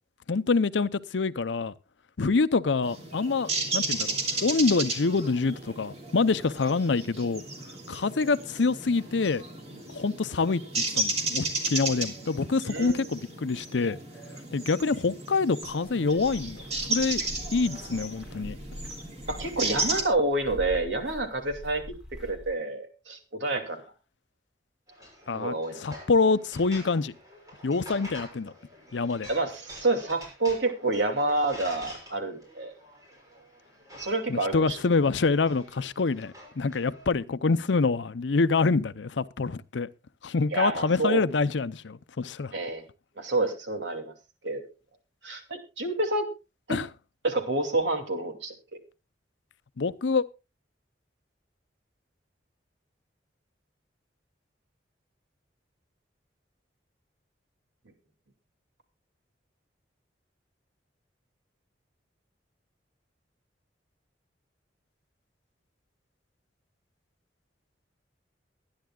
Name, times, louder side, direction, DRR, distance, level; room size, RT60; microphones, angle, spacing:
voice 1, 0.3-1.7 2.2-4.2 4.4-7.4 7.9-9.4 9.9-14.0 14.5-17.2 17.5-18.6 25.3-27.1 27.6-28.5 28.9-29.3 34.3-39.9 40.2-42.5 46.7-46.9 49.8-50.2, left 4 dB, 80° left, 0.6 m, -26 dB
sound 1, 2.8-20.0, right 2 dB, 35° right, 2.9 m, -34 dB
voice 2, 12.6-13.0 17.2-17.3 19.3-21.9 22.2-23.8 25.3-25.8 29.3-32.7 33.9-34.8 40.5-41.2 42.5-42.9 43.2-44.1 44.4-44.6 45.2-46.3 46.7-46.8 47.2-48.5, right 2 dB, 80° right, 2.7 m, -28 dB
sound 2, 15.6-22.5, left 1 dB, 5° right, 4.4 m, -44 dB
sound 3, 24.9-37.1, equal, 20° right, 6.7 m, -48 dB
23.0 x 10.5 x 2.3 m
head